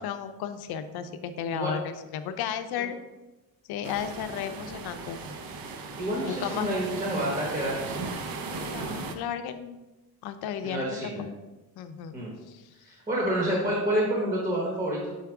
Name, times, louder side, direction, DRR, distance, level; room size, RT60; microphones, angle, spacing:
voice 1, 0.0-3.0 3.7-5.2 6.2-6.7 8.5-9.8 10.2-11.0 11.8-12.2 12.5-12.7, left 9 dB, 70° left, 10 dB, 0.6 m, -34 dB
sound 1, 3.8-9.2, right 4 dB, 60° right, 0.7 m, -37 dB
voice 2, 6.0-8.1 10.6-11.3 12.1-12.3 12.9-15.1, right 1 dB, 20° right, -3 dB, 1.0 m, -28 dB
5.7 x 4.7 x 3.5 m, 1.1 s
cardioid pair, 175°, 40 cm